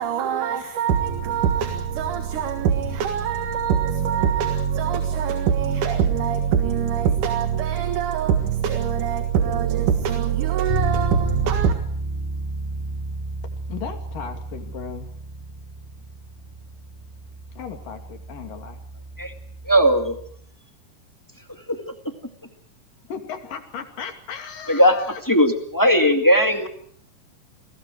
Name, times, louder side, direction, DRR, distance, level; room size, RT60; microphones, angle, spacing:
voice 1, 0.0-11.7, right 8 dB, 70° right, 3.1 m, -23 dB
Bass guitar, 10.7-20.5, right 2 dB, 15° right, 7.1 m, -32 dB
voice 2, 13.7-15.1 17.6-18.8 23.1-25.2, left 7 dB, 75° left, 4.2 m, -36 dB
voice 3, 19.7-20.1 24.7-25.0 25.2-26.7, equal, 10° left, 1.2 m, -17 dB
29.5 x 21.5 x 4.8 m
omnidirectional pair, 3.9 m